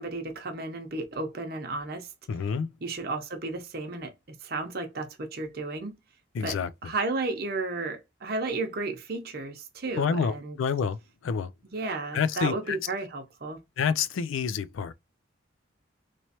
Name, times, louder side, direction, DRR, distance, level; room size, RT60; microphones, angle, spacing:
voice 1, 0.0-2.1 2.8-4.1 4.4-5.9 6.4-10.6 11.7-13.6, right 3 dB, 50° right, 0.8 m, -33 dB
voice 2, 2.3-2.7 6.3-6.9 10.0-11.5 12.1-12.8 13.8-14.9, left 6 dB, 80° left, 0.3 m, -28 dB
3.1 x 3.0 x 2.9 m
head